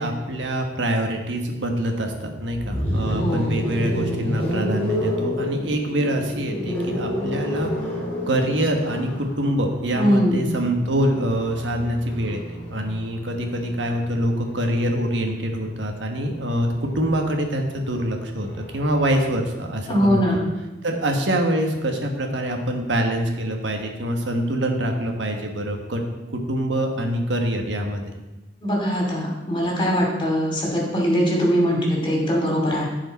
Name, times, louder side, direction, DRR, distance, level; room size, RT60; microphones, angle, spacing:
voice 1, 0.0-20.2 20.8-26.0 26.3-28.1, right 1 dB, 90° right, 3 dB, 1.4 m, -25 dB
sound 1, 2.5-14.5 15.7-19.3, equal, 10° left, 2.8 m, -30 dB
voice 2, 3.1-3.5 10.0-10.5 19.9-20.4 28.6-32.9, equal, 25° left, -2 dB, 2.5 m, -21 dB
14.5 x 4.9 x 4.1 m, 1.1 s
head